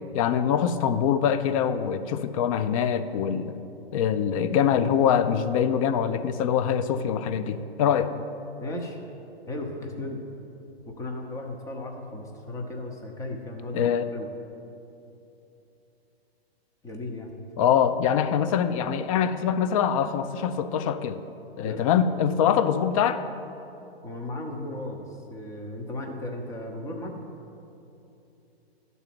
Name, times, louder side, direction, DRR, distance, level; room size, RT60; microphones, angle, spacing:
voice 1, 0.1-3.5 3.9-8.1 13.7-14.1 17.6-21.2 21.6-23.2, left 8 dB, 35° left, 12 dB, 0.4 m, -24 dB
voice 2, 8.6-9.0 9.5-10.2 10.9-14.3 16.8-17.3 21.6-21.8 24.0-27.1, left 1 dB, 10° left, 1 dB, 0.7 m, -35 dB
12.0 x 4.1 x 7.6 m, 2.9 s
hypercardioid pair, 135°, 32 cm